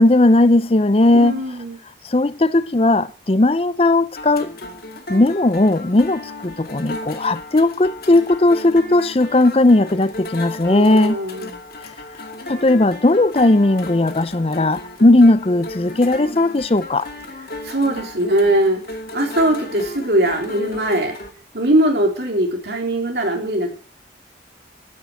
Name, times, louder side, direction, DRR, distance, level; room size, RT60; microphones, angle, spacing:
voice 1, 0.0-1.4 2.0-4.5 5.1-11.2 12.5-17.1, left 2 dB, 35° left, 0.6 m, -16 dB
voice 2, 1.1-1.8 10.7-11.6 17.6-21.1 21.5-23.7, right 1 dB, 65° right, 3.9 m, -20 dB
sound 1, 4.2-21.3, left 2 dB, 55° left, 2.3 m, -35 dB
12.0 x 10.0 x 8.8 m
head